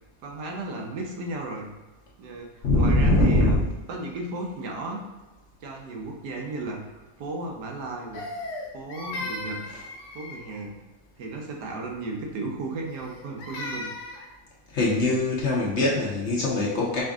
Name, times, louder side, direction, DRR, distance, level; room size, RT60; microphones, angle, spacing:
voice 1, 0.2-1.7 2.2-3.6 3.9-5.0 5.6-8.2 8.7-9.6 10.1-10.8 11.2-13.9, right 2 dB, 85° right, 1 dB, 1.4 m, -34 dB
voice 2, 2.6-3.6 9.7-9.8 14.7-17.0, left 2 dB, 55° left, -4 dB, 0.9 m, -22 dB
Crying sobbing, 8.1-10.7 12.9-14.3, left 2 dB, 85° left, 1.3 m, -37 dB
5.0 x 2.5 x 3.5 m, 1.1 s
omnidirectional pair, 1.7 m